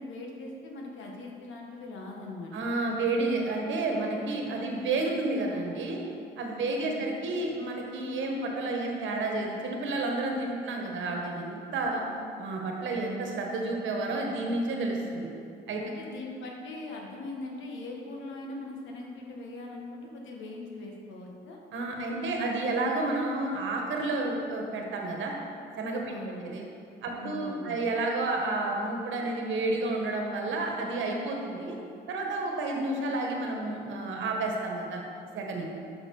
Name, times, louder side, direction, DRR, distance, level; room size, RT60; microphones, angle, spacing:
voice 1, 0.0-2.5 6.6-7.1 11.9-12.3 15.8-21.6 26.1-26.5 27.1-27.8, left 2 dB, 75° left, 0 dB, 1.3 m, -41 dB
voice 2, 2.5-6.0 6.4-12.0 12.4-15.3 15.7-15.8 21.7-25.3 25.8-26.6 27.0-31.8 32.1-35.0 35.3-35.7, right 2 dB, 75° right, 1 dB, 1.2 m, -30 dB
6.3 x 5.8 x 5.3 m, 2.5 s
cardioid pair, 90°, 20 cm